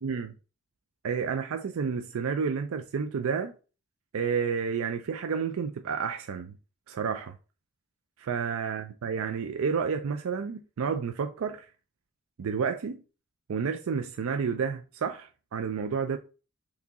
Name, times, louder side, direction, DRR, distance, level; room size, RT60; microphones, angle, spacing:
voice 1, 0.0-0.3 1.0-3.5 4.1-6.5 6.9-7.4 8.2-11.7 12.4-13.0 13.5-16.2, right 6 dB, 70° right, 0.4 m, -30 dB
4.6 x 2.7 x 4.0 m
head